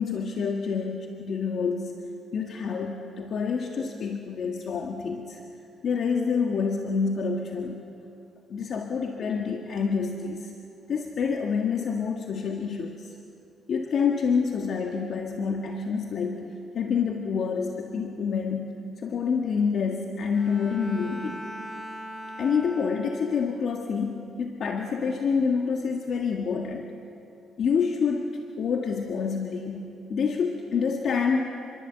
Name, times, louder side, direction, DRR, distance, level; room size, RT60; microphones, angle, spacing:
voice 1, 0.0-2.0 2.3-5.4 5.8-7.8 8.5-10.5 10.9-13.1 13.7-21.5 22.4-26.9 27.6-31.4, left 5 dB, 55° left, 2 dB, 1.8 m, -27 dB
Bowed string instrument, 20.3-23.5, equal, 5° right, 3.2 m, -40 dB
28.5 x 22.0 x 8.2 m, 2.6 s
cardioid pair, 135°, 0 cm